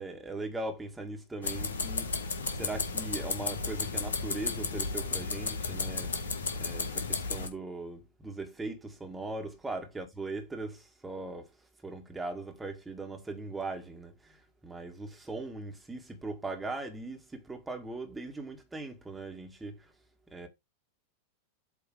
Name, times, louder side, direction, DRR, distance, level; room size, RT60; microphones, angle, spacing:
voice 1, 0.0-2.2 2.5-6.1 6.5-11.5 11.8-19.9 20.3-20.5, right 2 dB, 10° right, 1.8 m, -39 dB
sound 1, 1.4-7.5, left 4 dB, 70° left, 1.3 m, -33 dB
8.2 x 3.2 x 4.9 m
figure-of-eight pair, 90°, 0 cm